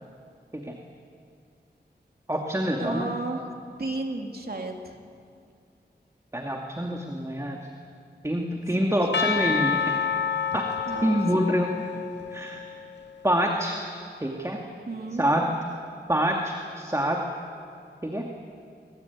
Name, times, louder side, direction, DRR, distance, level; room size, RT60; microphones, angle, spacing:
voice 1, 2.3-3.1 6.3-7.6 8.2-10.0 10.5-10.7 11.0-11.7 12.3-12.6 13.2-13.8 14.2-14.6 15.2-15.5 16.1-17.2 18.0-18.3, equal, 15° right, 1 dB, 2.3 m, -26 dB
voice 2, 2.8-3.4 3.8-4.9 8.8-9.3 10.9-11.5 14.9-15.3, right 2 dB, 60° right, 2 dB, 3.2 m, -33 dB
Percussion / Church bell, 9.1-13.1, left 6 dB, 80° left, 0.7 m, -29 dB
24.5 x 23.5 x 9.5 m, 2.3 s
wide cardioid pair, 75°, 18 cm